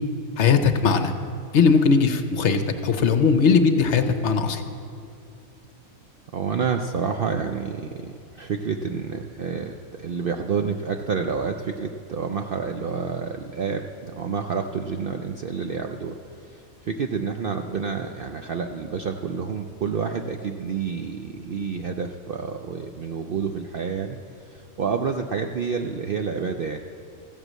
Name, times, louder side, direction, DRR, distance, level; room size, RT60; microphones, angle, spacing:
voice 1, 0.4-1.1 1.5-4.6, left 5 dB, 60° left, 8 dB, 0.9 m, -19 dB
voice 2, 6.3-26.8, right 6 dB, 60° right, 5 dB, 0.6 m, -29 dB
14.5 x 8.0 x 7.4 m, 2.5 s
omnidirectional pair, 1.5 m